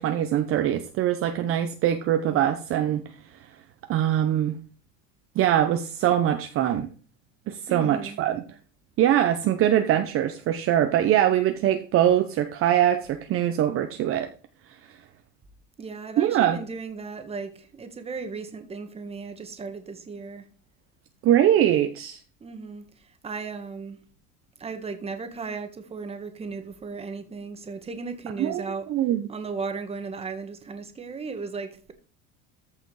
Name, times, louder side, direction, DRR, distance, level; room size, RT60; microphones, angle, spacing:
voice 1, 0.0-3.0 3.9-4.6 5.4-6.9 7.5-8.4 9.0-14.3 16.2-16.6 21.2-22.2 28.4-29.2, right 11 dB, 40° right, 0.8 m, -22 dB
voice 2, 7.7-8.2 15.8-20.5 22.4-24.0 24.6-28.9 29.3-31.9, right 4 dB, 15° right, 1.4 m, -36 dB
14.0 x 5.0 x 4.8 m
cardioid pair, 145°, 34 cm